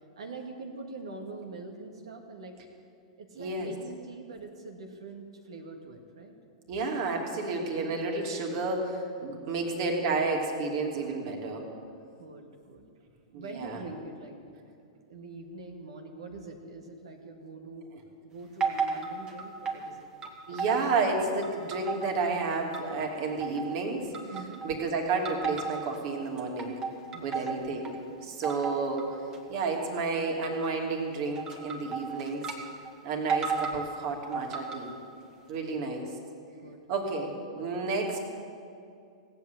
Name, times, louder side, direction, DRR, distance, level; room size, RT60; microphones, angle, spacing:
voice 1, 0.2-2.6 3.2-6.3 9.3-9.7 12.1-12.8 13.3-14.5 15.1-17.9 18.2-20.0 24.3-24.6 27.0-27.5 35.6-35.8 36.6-36.8, right 3 dB, 75° right, 2 dB, 1.8 m, -44 dB
voice 2, 3.4-3.7 6.7-11.7 13.3-13.8 20.5-24.1 24.6-26.8 27.2-29.2 29.5-32.5 33.0-34.9 35.5-36.0 36.9-38.2, right 3 dB, 50° right, 1 dB, 2.8 m, -31 dB
sound 1, 18.6-19.9 20.2-21.1 21.4-23.1 23.4-23.8 24.1-24.8 25.2-26.0 26.4-28.0 28.4-29.0 29.3-29.6 30.4-30.7 31.3-32.6 32.8-32.9 33.3-33.8 34.3-35.0, right 5 dB, 25° right, 2.2 m, -34 dB
17.5 x 8.4 x 8.4 m, 2.4 s
hypercardioid pair, 105°, 3 cm